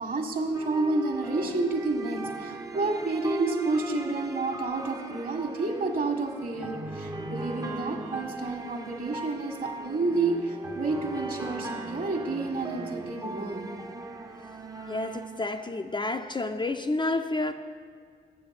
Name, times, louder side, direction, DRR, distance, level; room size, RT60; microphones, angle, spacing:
voice 1, 0.0-13.7, right 3 dB, 45° right, 4 dB, 1.6 m, -30 dB
sound 1, 0.5-16.0, right 3 dB, 15° right, 0.7 m, -38 dB
voice 2, 14.8-17.5, left 2 dB, 25° left, 6 dB, 0.5 m, -30 dB
7.7 x 7.2 x 5.7 m, 2.1 s
supercardioid pair, 45°, 20 cm